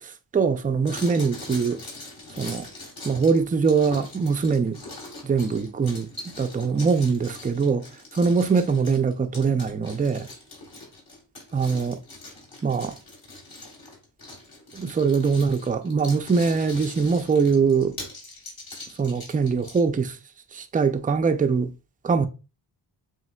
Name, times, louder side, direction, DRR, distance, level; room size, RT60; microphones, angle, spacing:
voice 1, 0.3-1.8 2.4-2.7 3.0-4.8 5.2-6.1 6.4-7.8 8.1-10.3 11.5-12.0 12.6-12.9 14.7-18.0 19.0-20.2 20.5-21.7 22.0-22.3, right 5 dB, 20° right, 0.4 m, -22 dB
sound 1, 0.9-19.9, left 2 dB, 55° left, 2.2 m, -42 dB
7.3 x 3.2 x 2.3 m
wide cardioid pair, 85°, 44 cm